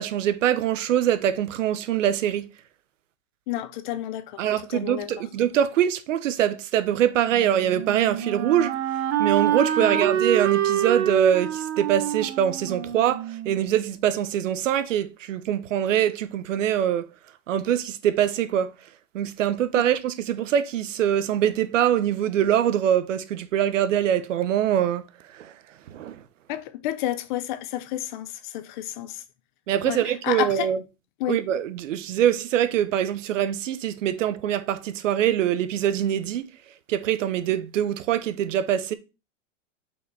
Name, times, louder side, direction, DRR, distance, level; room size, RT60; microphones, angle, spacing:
voice 1, 0.0-2.5 4.4-8.7 9.2-17.1 17.5-18.7 19.1-25.0 25.4-25.5 25.9-26.2 29.7-30.8 31.3-36.5 36.9-38.9, right 10 dB, 85° right, 1.0 m, -23 dB
voice 2, 3.5-4.4 4.7-5.1 9.8-10.1 26.5-29.2 29.8-30.7 31.2-31.4, left 13 dB, 40° left, 0.7 m, -30 dB
Wind instrument woodwind instrument, 7.3-14.2, right 10 dB, 60° right, 1.2 m, -27 dB
5.5 x 4.6 x 4.7 m
supercardioid pair, 160°, 37 cm